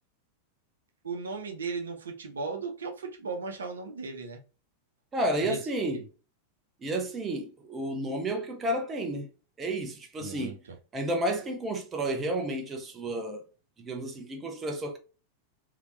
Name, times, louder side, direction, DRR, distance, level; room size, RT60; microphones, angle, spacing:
voice 1, 1.0-4.4 5.4-5.6 5.9-6.0 10.2-10.5, right 4 dB, 70° right, 0.7 m, -36 dB
voice 2, 5.1-6.0 6.8-9.3 9.6-10.5 10.9-13.5 13.8-15.0, right 1 dB, 20° right, 0.7 m, -31 dB
3.4 x 2.8 x 2.4 m
figure-of-eight pair, 90°, 0 cm